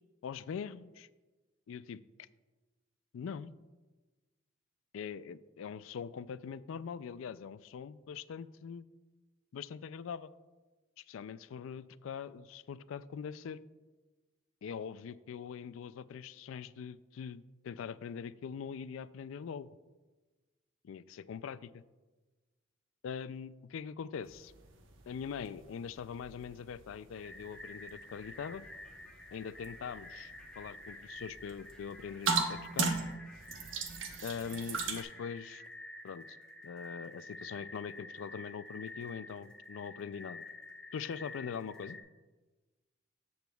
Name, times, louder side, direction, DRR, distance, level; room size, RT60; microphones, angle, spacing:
voice 1, 0.2-1.1 1.7-2.3 3.1-3.5 4.9-8.9 9.5-10.3 11.0-13.6 14.6-19.7 20.8-21.8 23.0-24.5 25.1-28.6 29.3-32.9 34.2-35.6 36.0-36.4 36.6-40.4 40.9-42.0, left 6 dB, 80° left, 17 dB, 0.3 m, -42 dB
sound 1, 24.2-35.0, right 4 dB, 75° right, 1.0 m, -39 dB
sound 2, 27.1-42.0, left 2 dB, 5° left, 1.0 m, -50 dB
13.5 x 7.9 x 2.3 m, 1.2 s
head